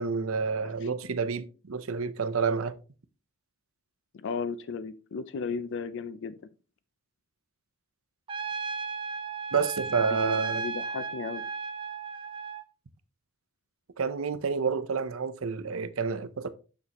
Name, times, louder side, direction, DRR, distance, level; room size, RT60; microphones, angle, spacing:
voice 1, 0.0-2.8 9.5-10.6 14.0-16.5, right 5 dB, 75° right, 0.6 m, -29 dB
voice 2, 4.1-6.3 10.1-11.4, left 5 dB, 60° left, 0.4 m, -35 dB
Trumpet, 8.3-12.6, right 4 dB, 25° right, 0.5 m, -35 dB
7.0 x 6.5 x 2.9 m
head